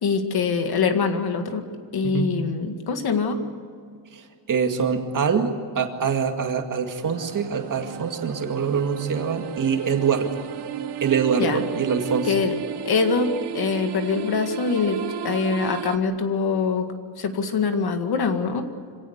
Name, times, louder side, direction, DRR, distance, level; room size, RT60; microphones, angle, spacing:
voice 1, 0.0-1.6 1.9-3.4 11.4-11.6 12.2-12.6 12.9-15.0 15.2-16.8 17.2-18.6, left 5 dB, 50° left, 6 dB, 2.1 m, -23 dB
voice 2, 2.0-2.3 4.5-10.4 11.0-12.3, right 6 dB, 40° right, 4 dB, 2.2 m, -24 dB
sound 1, 7.0-16.0, right 9 dB, 55° right, 1.2 m, -33 dB
26.0 x 17.5 x 8.1 m, 2.2 s
wide cardioid pair, 175°, 47 cm